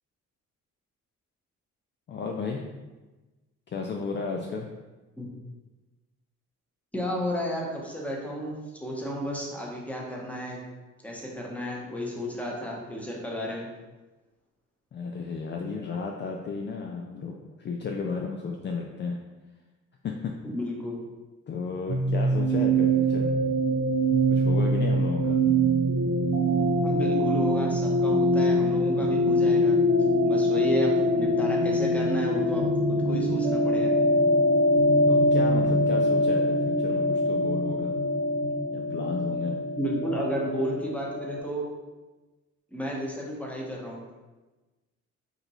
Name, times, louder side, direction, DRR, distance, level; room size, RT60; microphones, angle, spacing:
voice 1, 2.1-2.6 3.7-4.7 14.9-19.2 20.0-20.3 21.5-23.4 24.3-25.4 35.1-37.9 38.7-39.6, left 4 dB, 40° left, 1 dB, 0.4 m, -33 dB
voice 2, 6.9-10.6 11.0-13.7 20.4-21.0 26.4-26.5 26.8-29.8 30.2-33.9 39.8-41.7 42.7-44.0, equal, 5° left, -2 dB, 0.9 m, -32 dB
sound 1, 21.9-41.4, equal, 80° right, 1.5 m, -23 dB
5.0 x 2.6 x 3.0 m, 1.2 s
cardioid pair, 90°, 30 cm